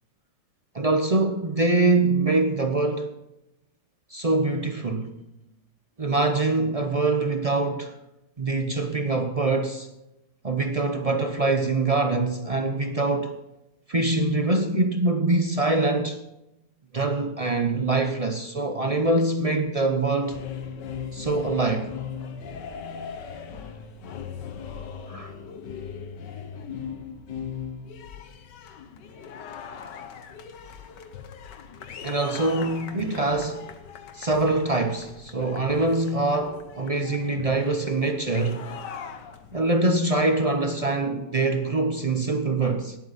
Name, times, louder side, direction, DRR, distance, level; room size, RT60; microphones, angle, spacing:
voice 1, 0.7-3.1 4.1-5.1 6.0-8.0 8.4-9.9 10.4-13.4 13.9-16.2 16.9-20.4 21.1-21.9 25.1-25.3 32.0-33.7 34.1-38.7 39.5-43.0, right 2 dB, 45° right, 0.4 m, -24 dB
sound 1, 20.2-39.7, left 7 dB, 85° left, 1.6 m, -39 dB
19.0 x 8.4 x 4.1 m
omnidirectional pair, 1.8 m